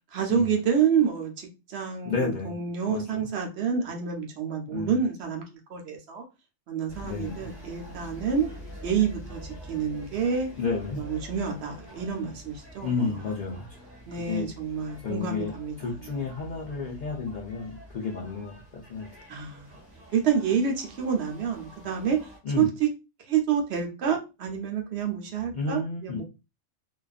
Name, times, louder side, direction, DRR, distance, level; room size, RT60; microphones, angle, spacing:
voice 1, 0.1-5.4 5.7-6.2 6.7-8.5 8.8-10.5 11.0-13.2 14.1-15.7 19.3-19.7 20.1-22.2 22.6-22.9 23.3-26.2, right 7 dB, 60° right, 0.8 m, -28 dB
voice 2, 2.0-2.6 2.9-3.3 4.7-4.9 7.0-7.4 10.6-11.0 12.8-13.9 14.1-14.5 15.0-19.2 22.4-22.7 25.5-26.2, left 4 dB, 60° left, 0.5 m, -31 dB
sound 1, 6.9-22.4, equal, 10° right, 0.8 m, -46 dB
2.4 x 2.3 x 2.3 m
omnidirectional pair, 1.4 m